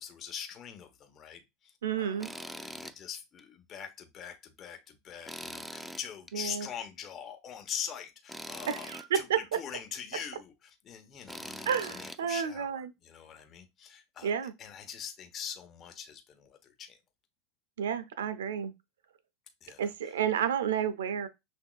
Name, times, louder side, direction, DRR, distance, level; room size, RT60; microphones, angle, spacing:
voice 1, 0.0-17.0 19.6-20.2, left 8 dB, 35° left, 1.0 m, -43 dB
voice 2, 1.8-2.3 6.3-6.7 8.7-9.4 11.7-12.9 14.2-14.5 17.8-18.7 19.8-21.3, right 8 dB, 85° right, 0.6 m, -31 dB
Tools, 2.2-3.0 3.4-3.5 5.3-6.3 8.3-9.1 11.3-12.2, equal, ahead, 0.3 m, -42 dB
6.1 x 2.7 x 2.4 m
hypercardioid pair, 105°, 0 cm